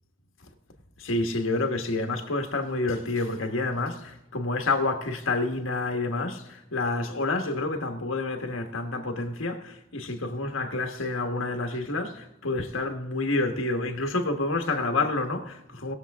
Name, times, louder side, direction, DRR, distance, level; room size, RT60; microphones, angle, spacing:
voice 1, 1.0-15.9, left 2 dB, 80° left, 1.4 m, -28 dB
19.5 x 7.2 x 3.6 m
head